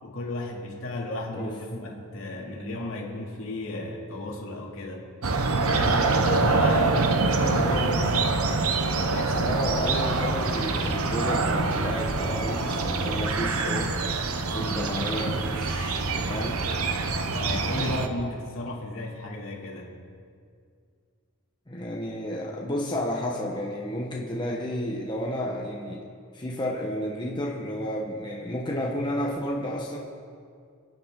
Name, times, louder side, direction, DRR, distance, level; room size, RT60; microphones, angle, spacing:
voice 1, 0.0-5.1 5.7-9.6 14.6-14.8 17.3-20.0, left 2 dB, 60° left, -2 dB, 2.8 m, -33 dB
sound 1, 5.2-18.1, right 3 dB, 75° right, 1.0 m, -25 dB
voice 2, 9.4-13.9 14.4-16.0 16.3-16.6 21.7-26.1 26.3-30.0, equal, 20° left, -2 dB, 1.3 m, -31 dB
29.0 x 9.9 x 3.9 m, 2.2 s
head